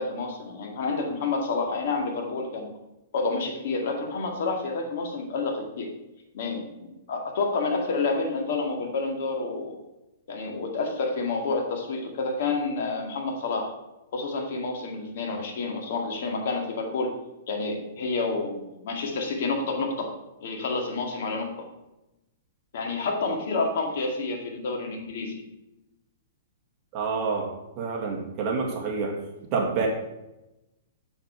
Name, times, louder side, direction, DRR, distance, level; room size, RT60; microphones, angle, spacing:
voice 1, 0.0-2.7 3.1-5.9 6.3-9.7 10.3-13.7 14.1-17.1 17.5-20.1 20.4-21.5 22.7-25.4, left 3 dB, 55° left, 2 dB, 2.0 m, -29 dB
voice 2, 26.9-27.5 27.8-29.2 29.5-29.9, right 4 dB, 30° right, 0 dB, 1.9 m, -27 dB
7.2 x 7.1 x 4.5 m, 0.95 s
hypercardioid pair, 160°, 0 cm